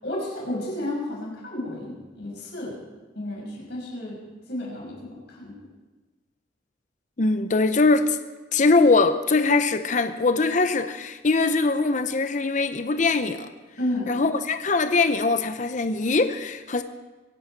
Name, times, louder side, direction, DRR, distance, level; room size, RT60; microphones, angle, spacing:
voice 1, 0.0-2.8 3.1-4.2 4.5-5.5 13.8-14.1, left 1 dB, 60° left, 5.8 m, -32 dB
voice 2, 7.2-8.2 8.5-13.5 14.1-16.8, left 3 dB, 40° left, 0.6 m, -22 dB
23.5 x 11.0 x 4.6 m
head